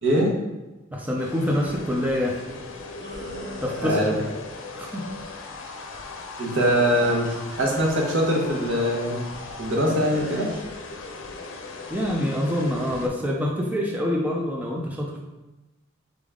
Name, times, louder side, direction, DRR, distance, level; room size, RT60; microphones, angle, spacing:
voice 1, 0.0-0.3 3.8-4.2 6.4-9.2 9.6-10.5, equal, 80° right, -2 dB, 1.1 m, -22 dB
voice 2, 0.9-2.4 3.6-4.0 4.7-5.1 11.9-15.2, left 1 dB, 10° right, -1 dB, 0.5 m, -26 dB
sound 1, 1.1-13.1, left 3 dB, 90° left, 0.6 m, -38 dB
sound 2, 3.0-4.1 6.5-7.6 9.9-10.7, equal, 45° right, 0.9 m, -38 dB
3.9 x 3.5 x 3.6 m, 1.1 s
head